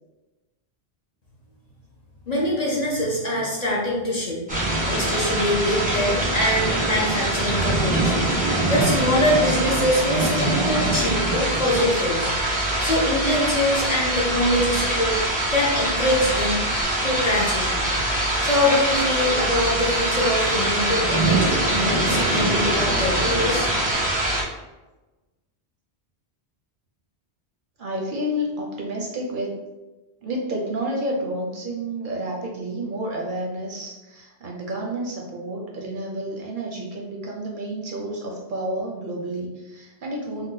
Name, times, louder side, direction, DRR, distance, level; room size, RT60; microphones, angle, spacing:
voice 1, 2.3-4.4 4.9-8.1 8.7-12.3 12.8-16.6 17.0-17.9 18.4-23.9, left 1 dB, 50° left, -4 dB, 0.6 m, -24 dB
sound 1, 4.5-24.4, right 1 dB, 10° right, 0.5 m, -23 dB
voice 2, 27.8-29.6 30.2-40.5, right 1 dB, 60° right, -1 dB, 0.6 m, -30 dB
2.7 x 2.1 x 3.8 m, 1.1 s
omnidirectional pair, 1.1 m